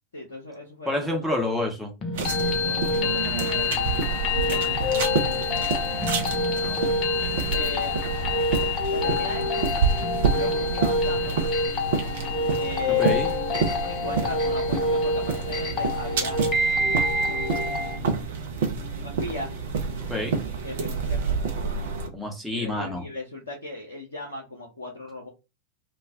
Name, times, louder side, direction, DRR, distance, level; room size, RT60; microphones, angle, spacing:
voice 1, 0.1-1.5 2.4-3.8 4.9-6.2 6.5-6.8 7.5-8.1 8.9-9.8 10.3-11.5 12.6-16.4 17.3-18.3 19.0-19.5 20.6-21.4 22.5-25.3, left 2 dB, 70° left, -1 dB, 0.6 m, -37 dB
voice 2, 0.8-1.9 12.9-13.3 20.1-20.4 22.1-23.1, left 2 dB, ahead, -1 dB, 0.9 m, -28 dB
sound 1, 2.0-18.0, left 3 dB, 25° left, 0.6 m, -26 dB
sound 2, 2.1-22.1, right 5 dB, 55° right, 0.6 m, -28 dB
2.4 x 2.1 x 3.4 m, 0.27 s
figure-of-eight pair, 90°, 0 cm